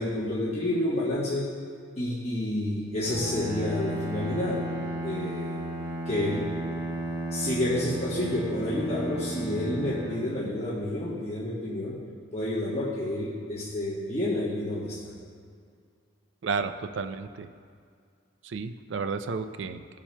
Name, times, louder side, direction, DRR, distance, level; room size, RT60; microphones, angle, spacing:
voice 1, 0.0-1.5 2.0-5.6 6.1-6.5 7.3-12.0 12.3-15.0, left 1 dB, 35° left, -7 dB, 1.2 m, -29 dB
Bowed string instrument, 3.0-11.0, right 1 dB, 20° right, 1.9 m, -34 dB
voice 2, 16.4-17.5 18.4-19.8, right 5 dB, 75° right, 9 dB, 0.4 m, -32 dB
16.5 x 7.2 x 2.2 m, 2.2 s
head